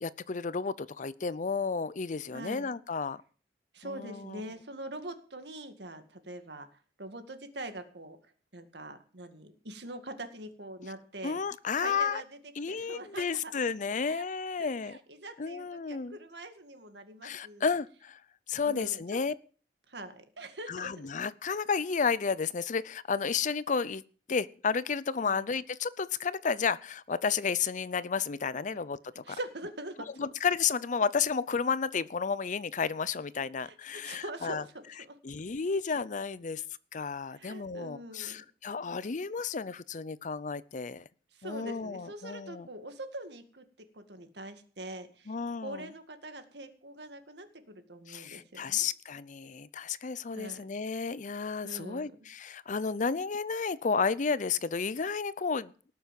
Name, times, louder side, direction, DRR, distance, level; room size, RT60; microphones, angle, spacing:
voice 1, 0.0-3.2 3.8-4.4 11.2-12.2 12.6-15.0 15.4-16.2 17.2-18.2 18.5-19.3 20.7-24.0 24.3-29.4 30.2-34.6 35.2-36.6 36.9-41.0 41.4-42.7 45.3-45.9 48.1-55.7, left 5 dB, 45° left, 18 dB, 0.6 m, -32 dB
voice 2, 2.3-2.7 3.7-6.7 7.0-11.4 11.8-12.2 12.7-13.5 14.0-14.2 14.6-17.7 18.6-19.2 19.9-20.9 25.2-25.5 29.2-30.1 33.6-34.7 35.0-35.2 36.4-36.6 37.3-38.4 41.3-48.9 50.3-50.6 51.6-52.2, right 1 dB, 70° right, 8 dB, 2.1 m, -44 dB
18.5 x 7.1 x 7.6 m, 0.43 s
head